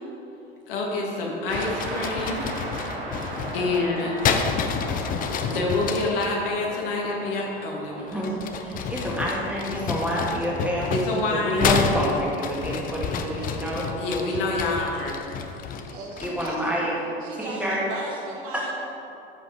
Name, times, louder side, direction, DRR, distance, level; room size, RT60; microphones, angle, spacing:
voice 1, 0.7-2.5 3.1-4.2 5.0-5.1 5.5-8.3 10.8-11.7 14.0-15.2, left 2 dB, 60° left, -2 dB, 1.6 m, -27 dB
sound 1, 1.5-6.3 8.1-16.7, left 6 dB, 25° left, 0.6 m, -30 dB
sound 2, 1.5-14.0, right 1 dB, 60° right, 1.6 m, -39 dB
voice 2, 3.5-4.2 8.3-8.4 15.9-16.9 17.2-18.8, right 2 dB, 45° right, -1 dB, 1.6 m, -37 dB
voice 3, 8.9-11.1 11.4-13.9 14.2-14.6 16.2-17.0 17.4-17.9 18.5-18.6, equal, 5° right, -5 dB, 1.9 m, -27 dB
13.0 x 5.1 x 3.5 m, 2.9 s
figure-of-eight pair, 80°, 31 cm